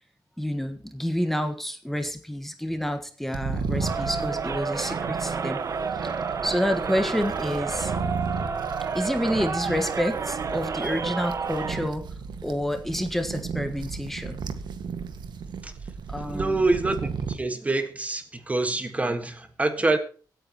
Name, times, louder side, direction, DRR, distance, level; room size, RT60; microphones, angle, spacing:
voice 1, 0.4-5.6 6.0-6.1 6.4-7.9 8.9-12.0 12.4-14.4 16.1-16.6, equal, 5° left, 6 dB, 1.4 m, -28 dB
sound 1, 3.3-17.4, right 5 dB, 85° right, 1.7 m, -35 dB
Crowd, 3.8-11.9, right 5 dB, 45° right, 1.3 m, -30 dB
voice 2, 16.3-20.0, right 2 dB, 20° right, 8 dB, 1.5 m, -26 dB
25.0 x 9.3 x 3.0 m, 0.41 s
wide cardioid pair, 175°, 7 cm